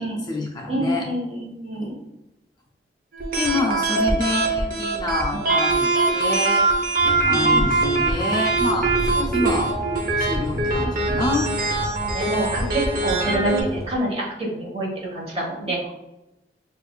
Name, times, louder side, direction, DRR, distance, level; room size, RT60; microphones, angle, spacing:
voice 1, 0.0-1.1 3.3-6.7 7.0-9.7 10.2-11.5, left 2 dB, 25° left, 0 dB, 0.4 m, -27 dB
voice 2, 0.7-1.9 5.3-5.5 7.2-7.6 9.2-9.3 12.1-15.9, right 1 dB, 35° right, -3 dB, 1.2 m, -27 dB
sound 1, 3.1-13.6, right 3 dB, 50° right, 0.7 m, -22 dB
sound 2, 7.0-14.0, equal, 20° right, 0.7 m, -32 dB
6.5 x 2.4 x 2.3 m, 0.95 s
head